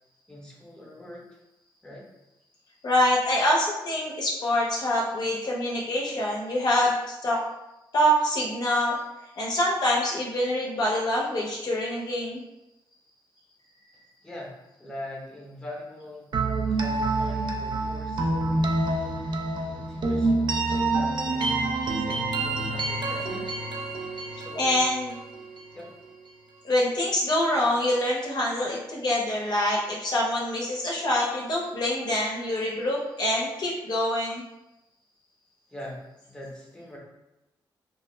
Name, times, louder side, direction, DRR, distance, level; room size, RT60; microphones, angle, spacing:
voice 1, 0.3-1.4 1.8-2.1 14.2-16.3 16.7-19.0 19.6-23.5 24.3-24.9 25.7-25.9 35.7-37.0, left 1 dB, 10° left, -3 dB, 0.7 m, -42 dB
voice 2, 2.8-7.4 7.9-9.0 9.4-12.4 24.4-25.2 26.6-34.4, left 1 dB, 50° left, -3 dB, 0.6 m, -25 dB
sound 1, 16.3-26.1, right 2 dB, 60° right, 0.3 m, -27 dB
2.3 x 2.1 x 3.0 m, 0.96 s
cardioid pair, 70°, 9 cm